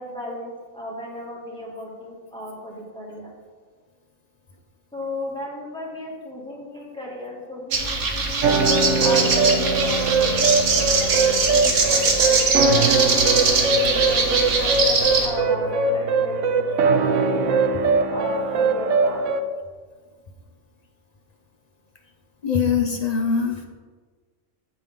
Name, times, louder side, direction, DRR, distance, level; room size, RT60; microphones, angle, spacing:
voice 1, 0.0-3.3 4.9-8.5 9.0-13.2 13.6-17.6 18.1-19.2, left 1 dB, 5° left, -5 dB, 2.2 m, -35 dB
sound 1, 7.7-15.3, right 4 dB, 90° right, 1.6 m, -21 dB
sound 2, 8.4-19.4, right 3 dB, 65° right, 0.9 m, -21 dB
voice 2, 22.4-23.7, left 6 dB, 40° left, 4 dB, 0.7 m, -22 dB
15.0 x 5.6 x 3.7 m, 1.5 s
omnidirectional pair, 1.4 m